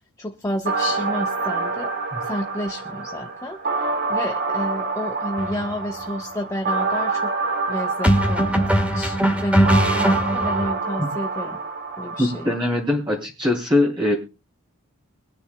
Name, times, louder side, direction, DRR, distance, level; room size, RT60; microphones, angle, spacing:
voice 1, 0.2-1.9 2.2-7.3 7.7-11.6 12.0-12.5, left 1 dB, 15° left, 0.9 m, -31 dB
sound 1, 0.7-12.7, right 3 dB, 50° right, 1.9 m, -27 dB
sound 2, 5.4-5.6 8.0-10.7, equal, 5° right, 2.0 m, -20 dB
voice 2, 12.2-14.1, left 2 dB, 25° right, 3.4 m, -21 dB
24.0 x 9.8 x 2.2 m
head